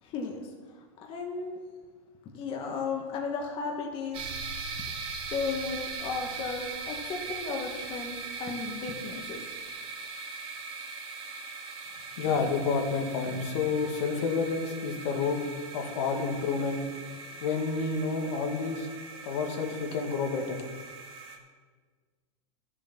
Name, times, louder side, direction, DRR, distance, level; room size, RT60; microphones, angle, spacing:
voice 1, 0.0-1.6 2.3-4.4 5.1-9.5, left 4 dB, 30° left, 1 dB, 1.3 m, -35 dB
sound 1, 4.1-21.4, right 4 dB, 35° right, 2.0 m, -40 dB
voice 2, 12.1-20.6, left 4 dB, 60° left, 3 dB, 2.0 m, -30 dB
12.0 x 7.3 x 5.8 m, 1.5 s
hypercardioid pair, 130°, 17 cm